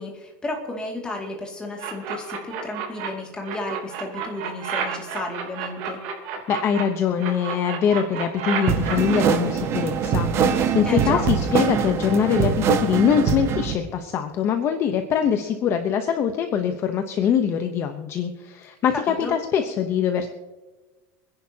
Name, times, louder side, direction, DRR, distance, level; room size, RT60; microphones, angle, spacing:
voice 1, 0.0-6.0 10.9-11.2 18.9-19.3, left 2 dB, 10° left, 0 dB, 2.3 m, -33 dB
sound 1, 1.8-3.1 3.4-6.8 7.2-9.2, right 7 dB, 65° right, 3.1 m, -30 dB
voice 2, 6.5-20.3, left 8 dB, 30° left, 7 dB, 0.9 m, -23 dB
sound 2, 8.7-13.7, right 7 dB, 30° right, 1.1 m, -23 dB
27.0 x 10.5 x 2.9 m, 1.2 s
cardioid pair, 175°, 8 cm